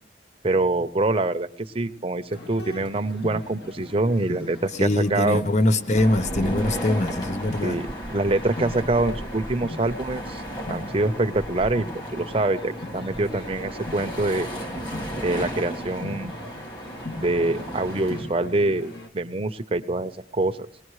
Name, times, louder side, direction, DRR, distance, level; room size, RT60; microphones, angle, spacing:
voice 1, 0.4-1.5 1.7-5.4 7.6-10.4 10.7-11.9 12.1-14.5 15.2-16.4 17.2-20.6, right 2 dB, 35° right, 0.8 m, -25 dB
sound 1, 2.3-19.1, left 1 dB, 70° left, 2.1 m, -40 dB
voice 2, 4.8-7.8, left 1 dB, 40° left, 0.8 m, -23 dB
sound 2, 5.9-18.2, right 1 dB, 25° left, 1.9 m, -34 dB
22.5 x 18.5 x 3.2 m
head